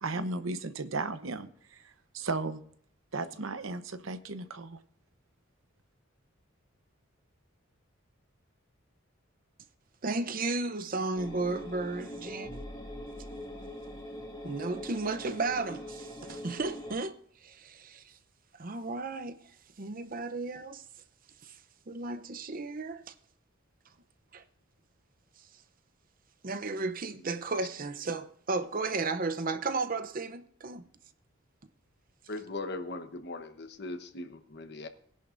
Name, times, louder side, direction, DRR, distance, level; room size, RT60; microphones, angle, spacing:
voice 1, 0.0-2.6 3.1-4.8, right 3 dB, 80° right, 0.9 m, -35 dB
voice 2, 10.0-12.6 14.4-17.1 17.4-18.0 18.6-19.4 19.8-20.8 21.9-23.0 24.3-24.4 26.4-30.8, right 3 dB, 45° right, 0.7 m, -34 dB
sound 1, 11.1-17.0, equal, 20° left, 2.2 m, -42 dB
voice 3, 32.3-34.9, left 2 dB, 55° left, 1.0 m, -39 dB
20.5 x 10.5 x 2.6 m
head